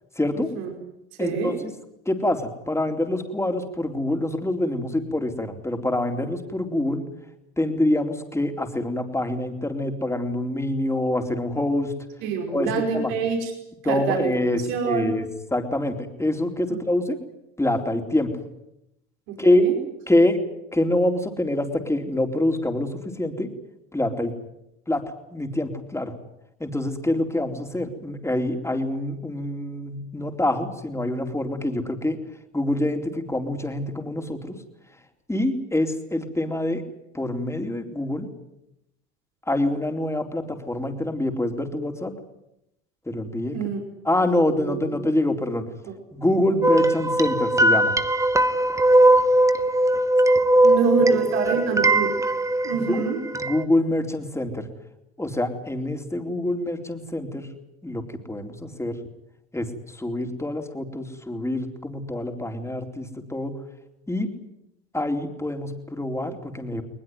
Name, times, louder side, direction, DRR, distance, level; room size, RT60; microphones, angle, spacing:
voice 1, 0.2-0.5 1.2-1.7 2.1-7.0 7.6-11.9 12.5-13.1 13.8-15.3 15.5-17.2 17.6-18.3 19.4-19.6 20.1-20.4 20.7-23.5 23.9-24.3 24.9-25.0 25.3-26.1 26.6-32.2 32.5-34.6 35.3-36.8 37.1-38.3 39.5-42.1 43.1-43.6 44.0-45.7 46.1-47.9 52.7-53.0 53.3-54.7 55.2-57.5 57.8-59.0 59.5-63.6 64.1-64.3 64.9-66.8, left 1 dB, 10° left, 4 dB, 4.0 m, -25 dB
voice 2, 1.2-1.5 12.2-13.5 13.8-15.2 19.3-19.8 43.5-43.8 44.2-45.0 45.8-45.9 50.6-52.1 52.6-53.2, right 6 dB, 80° right, 1 dB, 5.4 m, -26 dB
sound 1, 46.6-53.6, right 1 dB, 10° right, 1.2 m, -19 dB
21.5 x 20.5 x 9.5 m, 0.83 s
hypercardioid pair, 80°, 31 cm